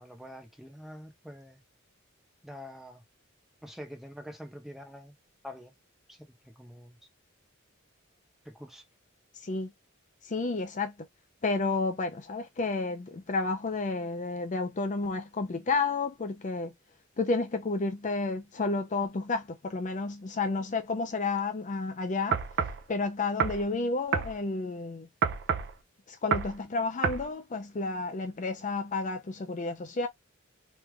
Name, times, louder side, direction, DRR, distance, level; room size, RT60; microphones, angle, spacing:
voice 1, 0.0-1.6 2.4-3.0 3.6-5.1 5.4-5.7 6.1-7.0 8.4-8.8, equal, ahead, 0.8 m, -46 dB
voice 2, 10.2-10.9 11.4-16.7 17.2-22.4 22.9-25.1 26.1-30.1, left 3 dB, 35° left, 0.5 m, -31 dB
sound 1, 22.3-22.8 23.4-23.6 24.1-24.3 25.2-25.7 26.3-26.5 27.0-27.2, right 6 dB, 55° right, 0.6 m, -28 dB
3.2 x 3.2 x 2.2 m
head